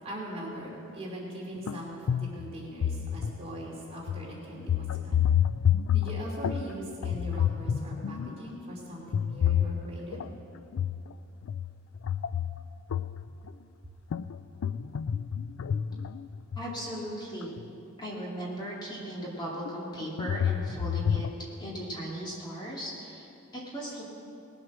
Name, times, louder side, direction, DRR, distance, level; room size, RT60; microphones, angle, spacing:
voice 1, 0.0-5.3 5.9-10.2, equal, 30° right, -4 dB, 2.8 m, -40 dB
sound 1, 1.7-1.8 2.1-3.6 4.1-4.3 4.6-6.7 7.0-8.5 9.1-10.3 10.7-11.1 11.4-13.5 14.1-16.7 17.6-17.7 18.2-18.3 19.7-21.3, left 9 dB, 85° left, 0.4 m, -29 dB
voice 2, 16.6-17.6 18.0-21.3 21.6-24.0, right 1 dB, 20° left, -5 dB, 2.5 m, -37 dB
19.5 x 7.9 x 6.1 m, 2.8 s
head